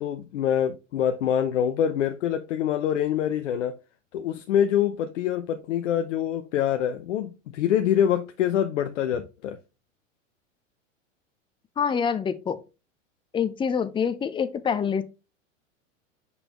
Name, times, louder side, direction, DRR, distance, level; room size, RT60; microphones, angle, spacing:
voice 1, 0.0-3.8 4.1-9.6, left 9 dB, 65° left, 0.7 m, -25 dB
voice 2, 11.8-12.6 13.3-15.0, left 7 dB, 15° left, 0.6 m, -26 dB
6.8 x 5.4 x 2.9 m
hypercardioid pair, 95°, 38 cm